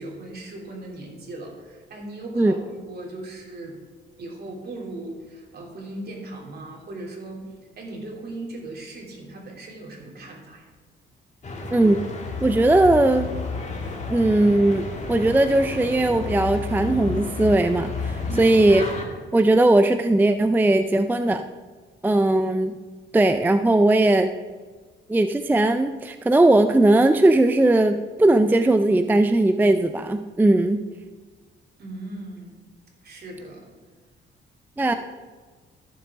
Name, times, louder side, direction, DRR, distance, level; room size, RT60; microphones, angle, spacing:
voice 1, 0.0-3.8 4.2-7.5 7.8-10.7 18.3-18.6 31.8-32.6 33.0-33.7 34.9-35.0, right 2 dB, 55° right, -1 dB, 3.0 m, -38 dB
sound 1, 11.4-19.1, left 3 dB, 35° left, 1.7 m, -31 dB
voice 2, 11.7-12.0 12.4-13.3 14.1-18.9 19.3-21.4 22.0-22.7 23.1-24.3 25.1-30.8 34.8-34.9, right 2 dB, 10° right, 9 dB, 0.4 m, -19 dB
14.0 x 7.1 x 3.6 m, 1.4 s
cardioid pair, 90°, 20 cm